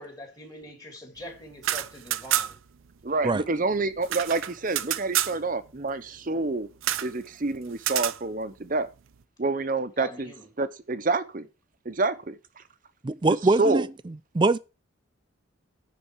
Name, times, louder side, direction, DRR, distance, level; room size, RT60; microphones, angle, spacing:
voice 1, 0.0-2.6 10.0-10.5, left 1 dB, 20° left, 2.5 m, -43 dB
sound 1, 1.5-2.8 3.0-3.1 3.4-5.4 6.8-7.1 7.8-8.2, right 13 dB, 75° right, 0.5 m, -28 dB
voice 2, 3.0-6.7 7.0-8.9 9.4-10.3 10.6-11.5 11.8-12.6 13.6-13.8, right 3 dB, 40° right, 0.7 m, -28 dB
voice 3, 13.0-13.9 14.3-14.6, right 3 dB, 20° right, 0.3 m, -22 dB
10.0 x 4.2 x 6.5 m
head